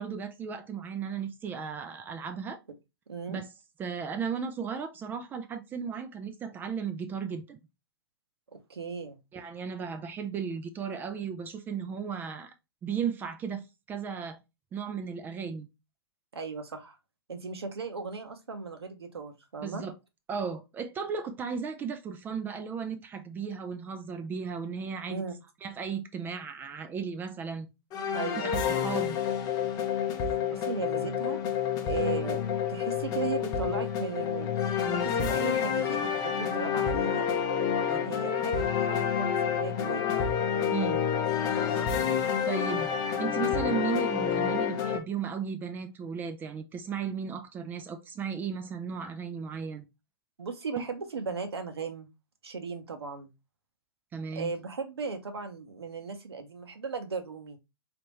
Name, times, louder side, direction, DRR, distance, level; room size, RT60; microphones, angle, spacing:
voice 1, 0.0-2.6 3.3-3.5 3.8-7.6 9.3-12.5 12.8-14.4 14.7-15.7 19.6-19.9 20.3-25.2 25.6-27.7 28.4-29.2 37.9-38.0 39.4-39.5 40.7-41.0 42.5-42.9 43.2-49.9 50.8-50.9 54.1-54.5, right 6 dB, 15° right, 0.3 m, -35 dB
voice 2, 3.1-3.4 8.5-9.2 16.3-17.0 17.3-19.8 25.1-25.3 28.1-28.5 30.5-31.4 31.8-34.5 34.9-37.3 38.0-40.3 41.6-41.9 50.4-52.1 52.4-53.3 54.4-57.6, right 5 dB, 80° right, 0.8 m, -37 dB
sound 1, 27.9-45.0, left 7 dB, 30° left, 0.6 m, -29 dB
3.4 x 2.9 x 3.1 m
figure-of-eight pair, 120°, 13 cm